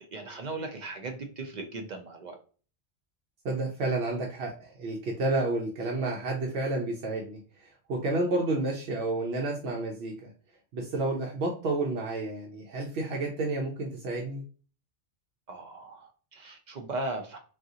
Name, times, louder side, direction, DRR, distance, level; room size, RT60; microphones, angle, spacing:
voice 1, 0.1-2.3 15.5-17.4, right 2 dB, 55° right, 5 dB, 0.6 m, -37 dB
voice 2, 3.4-10.3 10.7-14.4, right 2 dB, 85° right, -1 dB, 0.9 m, -30 dB
3.6 x 2.4 x 2.7 m, 0.39 s
omnidirectional pair, 1.0 m